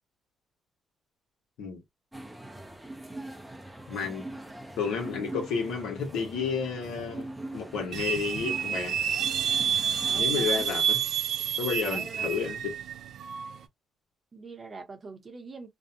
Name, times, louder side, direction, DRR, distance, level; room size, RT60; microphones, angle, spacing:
sound 1, 2.1-10.2, right 1 dB, 10° right, 0.5 m, -42 dB
voice 1, 3.9-4.2 4.8-9.0 10.1-11.0 11.6-12.8, left 6 dB, 85° left, 1.1 m, -31 dB
sound 2, 7.9-13.6, right 9 dB, 70° right, 0.4 m, -29 dB
voice 2, 10.1-10.7 11.8-12.4 14.3-15.7, right 4 dB, 35° right, 0.8 m, -43 dB
2.6 x 2.2 x 2.6 m
cardioid pair, 90°, 0 cm